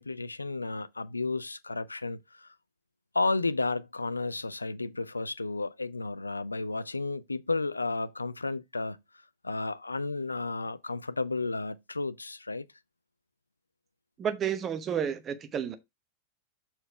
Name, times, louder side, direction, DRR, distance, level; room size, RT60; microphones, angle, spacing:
voice 1, 0.0-2.5 3.1-9.0 9.4-12.7, left 3 dB, 80° left, 0.4 m, -32 dB
voice 2, 14.2-15.8, right 8 dB, 25° right, 1.0 m, -31 dB
6.6 x 4.4 x 4.7 m
figure-of-eight pair, 90°, 0 cm